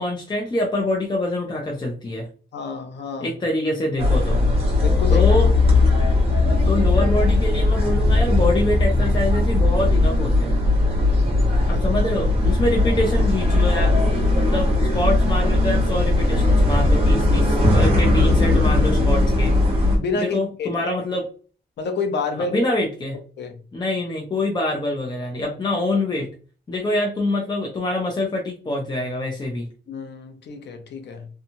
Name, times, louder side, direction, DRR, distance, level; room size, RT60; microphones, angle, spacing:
voice 1, 0.0-2.3 3.2-4.4 5.1-5.5 6.5-10.6 11.7-13.9 14.3-19.6 20.2-21.2 22.5-23.2 23.7-26.3 26.7-29.7, left 1 dB, 25° left, -1 dB, 0.6 m, -25 dB
voice 2, 2.5-3.3 4.8-5.3 11.7-11.8 20.0-20.8 21.8-22.7 23.4-23.6 29.9-31.3, left 4 dB, 70° left, 5 dB, 0.7 m, -29 dB
sound 1, 4.0-20.0, left 2 dB, 35° right, 1.0 m, -18 dB
2.9 x 2.2 x 2.6 m, 0.38 s
wide cardioid pair, 140°, 18 cm